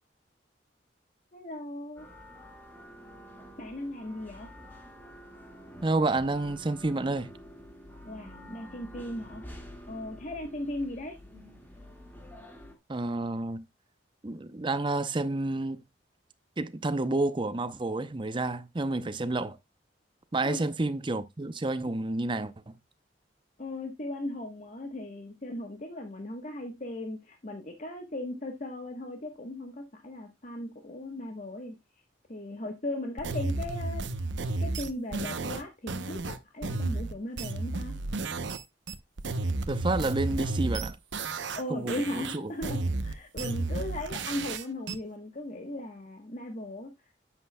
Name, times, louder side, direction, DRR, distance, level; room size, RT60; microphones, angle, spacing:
voice 1, 1.3-2.1 3.6-4.5 8.0-9.4 9.9-11.2 20.4-20.6 23.6-31.8 32.3-34.1 34.6-37.9 41.5-46.9, left 1 dB, 40° left, 1.2 m, -37 dB
sound 1, 2.0-12.8, equal, 10° left, 1.8 m, -48 dB
voice 2, 5.8-7.3 12.9-13.6 14.2-15.8 16.6-19.6 20.3-22.8 39.7-41.0 41.7-42.5, right 2 dB, 25° right, 0.6 m, -30 dB
sound 2, 33.2-38.6 38.9-41.6 41.9-44.9, right 3 dB, 85° right, 0.8 m, -32 dB
10.0 x 7.8 x 2.2 m
head